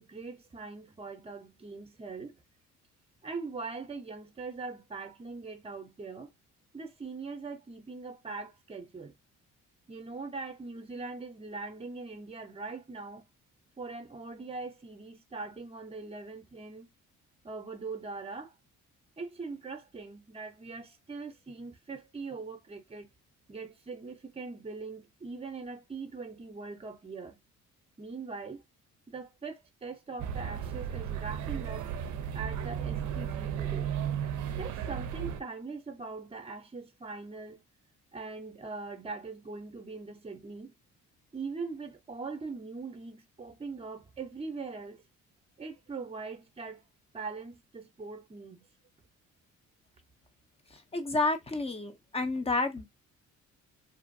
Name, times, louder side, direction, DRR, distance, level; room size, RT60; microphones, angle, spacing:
voice 1, 0.0-2.4 3.2-6.3 6.7-9.1 9.9-13.2 13.8-16.9 17.4-18.5 19.2-23.1 23.5-27.4 28.0-28.6 29.1-31.9 32.3-34.0 34.6-37.6 38.1-40.7 41.3-45.0 45.6-46.8 47.1-48.7, right 4 dB, 20° right, 0.7 m, -41 dB
sound 1, 30.2-35.4, right 9 dB, 75° right, 0.5 m, -34 dB
voice 2, 50.9-52.9, left 3 dB, 20° left, 0.6 m, -30 dB
2.6 x 2.4 x 2.6 m
cardioid pair, 90°, 30 cm